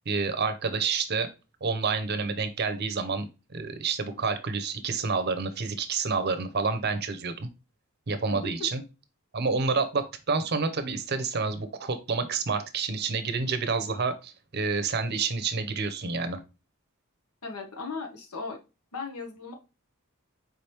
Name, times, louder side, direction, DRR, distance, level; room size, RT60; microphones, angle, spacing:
voice 1, 0.1-1.3 1.6-3.3 3.5-7.5 8.1-8.8 9.3-16.4, right 4 dB, 45° right, 9 dB, 0.6 m, -29 dB
voice 2, 8.3-8.7 17.4-18.6 18.9-19.5, left 4 dB, 90° left, 3 dB, 1.1 m, -37 dB
4.8 x 3.3 x 2.9 m, 0.29 s
head